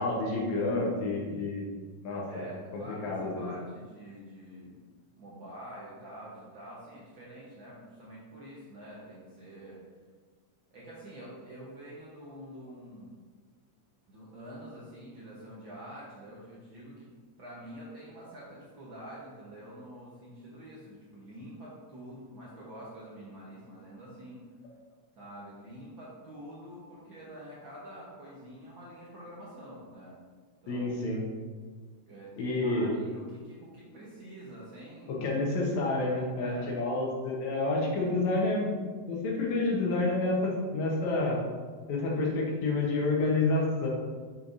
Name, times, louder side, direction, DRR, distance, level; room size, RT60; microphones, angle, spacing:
voice 1, 0.0-1.7 2.0-2.5 2.7-3.5 30.7-31.2 32.4-32.9 35.1-38.8 39.1-41.4 41.9-43.9, left 2 dB, 75° left, -1 dB, 2.3 m, -29 dB
voice 2, 2.3-4.8 5.2-9.8 10.7-13.2 14.1-17.1 17.4-24.5 25.2-30.2 30.6-30.9 32.1-35.3 36.4-36.6, equal, 60° right, -7 dB, 1.3 m, -47 dB
6.9 x 5.7 x 2.6 m, 1.5 s
omnidirectional pair, 3.3 m